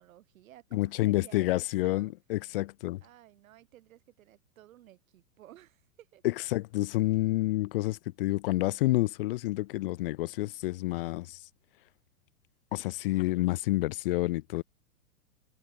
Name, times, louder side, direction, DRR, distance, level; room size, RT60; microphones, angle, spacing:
voice 1, 0.0-2.1 3.0-6.2, right 13 dB, 65° right, 4.8 m, -55 dB
voice 2, 0.7-3.0 6.2-11.4 12.7-14.6, left 18 dB, 40° left, 0.4 m, -29 dB
hypercardioid pair, 125°, 44 cm